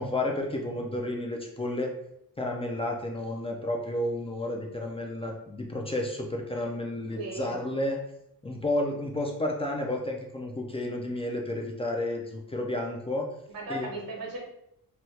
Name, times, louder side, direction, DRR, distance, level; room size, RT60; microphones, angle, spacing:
voice 1, 0.0-1.9 2.4-8.0 8.4-13.3 13.7-13.9, left 1 dB, 15° left, 0 dB, 0.3 m, -31 dB
voice 2, 7.1-7.6 13.5-14.4, right 2 dB, 70° right, -2 dB, 1.1 m, -36 dB
2.8 x 2.3 x 3.1 m, 0.78 s
cardioid pair, 120°, 36 cm